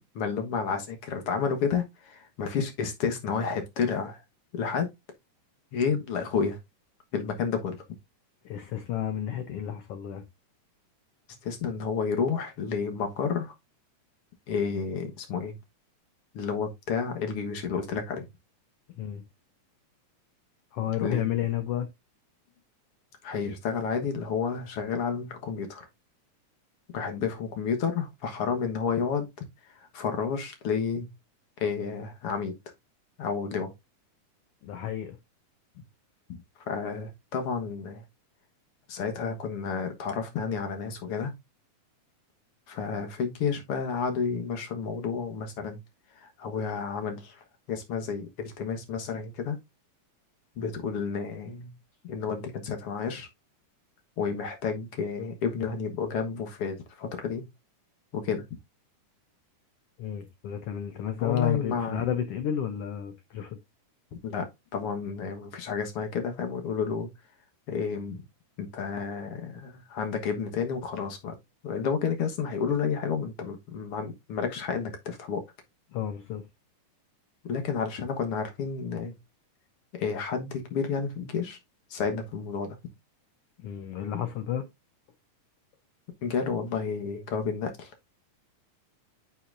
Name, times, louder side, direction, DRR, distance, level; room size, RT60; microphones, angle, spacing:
voice 1, 0.2-4.2 4.5-4.9 5.7-6.6 7.1-7.8 11.4-13.5 14.5-15.5 16.3-18.3 21.0-21.2 23.2-25.9 26.9-29.5 29.9-31.1 31.6-32.5 33.2-33.7 36.3-36.4 36.7-38.0 38.9-41.3 42.7-45.8 46.2-49.6 50.6-51.7 52.0-53.3 54.2-57.5 58.1-58.4 61.2-62.0 64.2-67.1 67.7-68.2 68.6-71.3 71.6-75.4 77.4-79.2 79.9-81.6 81.9-82.7 86.2-87.9, left 6 dB, 55° left, 1.9 m, -31 dB
voice 2, 8.4-10.2 19.0-19.2 20.7-21.9 34.6-35.2 60.0-63.6 75.9-76.5 83.6-84.7, left 10 dB, 75° left, 1.3 m, -31 dB
9.8 x 5.8 x 2.5 m
omnidirectional pair, 3.6 m